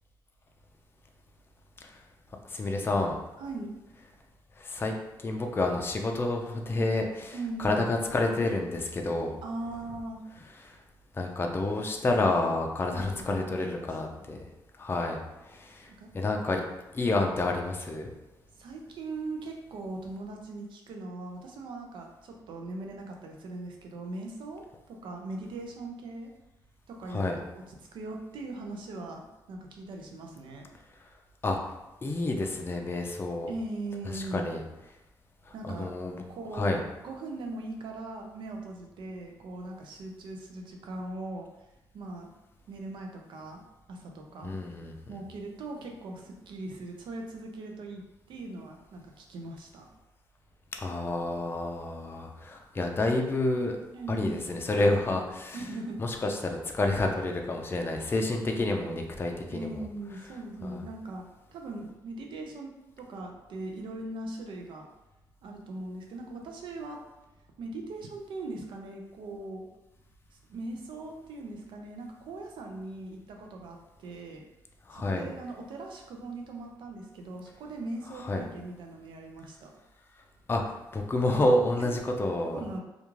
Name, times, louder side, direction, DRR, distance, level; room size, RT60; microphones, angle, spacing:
voice 1, 2.5-3.2 4.6-4.9 5.2-9.4 11.1-14.4 14.8-15.2 15.5-15.9 16.1-16.6 16.9-18.1 27.1-27.4 31.4-31.6 32.0-33.5 34.1-34.6 35.6-36.2 36.5-36.8 44.4-44.9 50.8-53.8 54.1-55.6 56.0-59.7 60.6-60.8 74.9-75.2 78.3-78.4 80.5-80.6 80.9-82.6, left 2 dB, 25° left, 2 dB, 0.4 m, -29 dB
voice 2, 3.4-3.7 7.3-7.9 9.4-10.2 12.9-14.3 15.9-16.1 18.6-26.3 26.9-30.7 33.5-34.5 35.5-35.9 36.3-41.5 41.9-42.3 42.7-43.6 43.9-44.5 45.1-48.0 48.3-49.9 53.9-54.5 55.5-56.0 59.5-61.2 61.5-64.9 65.4-67.0 67.6-69.6 70.5-74.4 74.9-79.7 81.8-81.9 82.5-82.8, right 2 dB, 75° right, 2 dB, 0.5 m, -40 dB
2.4 x 2.3 x 3.0 m, 0.97 s
cardioid pair, 70°, 8 cm